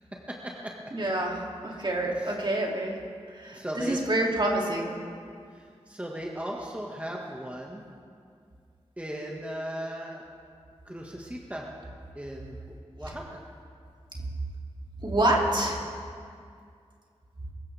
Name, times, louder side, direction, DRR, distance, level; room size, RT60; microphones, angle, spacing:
voice 1, 0.3-0.9 2.2-2.3 3.5-4.0 5.5-7.8 9.0-10.2 10.9-11.7 12.2-13.4, equal, 10° right, -2 dB, 1.8 m, -37 dB
voice 2, 0.9-3.0 3.3-5.0 15.0-15.8, right 1 dB, 45° right, -2 dB, 2.9 m, -27 dB
23.0 x 14.5 x 3.6 m, 2.3 s
cardioid pair, 50°, 11 cm